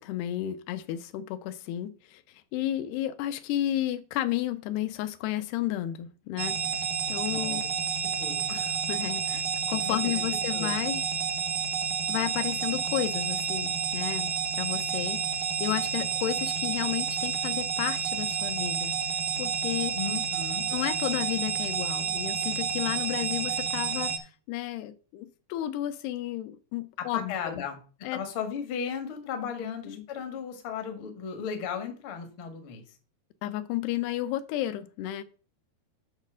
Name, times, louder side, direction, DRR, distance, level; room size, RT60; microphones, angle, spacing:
voice 1, 0.0-7.7 8.5-9.4 9.7-11.0 12.1-20.0 20.7-27.6 28.0-28.2 29.6-30.1 33.4-35.2, left 13 dB, 80° left, 11 dB, 2.5 m, -32 dB
sound 1, 6.4-24.2, right 7 dB, 90° right, 1.6 m, -30 dB
voice 2, 7.3-7.7 8.2-8.5 9.8-10.2 10.5-10.8 19.9-20.7 27.0-27.8 28.1-32.8, left 7 dB, 65° left, 5 dB, 1.3 m, -35 dB
8.5 x 4.1 x 6.2 m, 0.38 s
omnidirectional pair, 4.8 m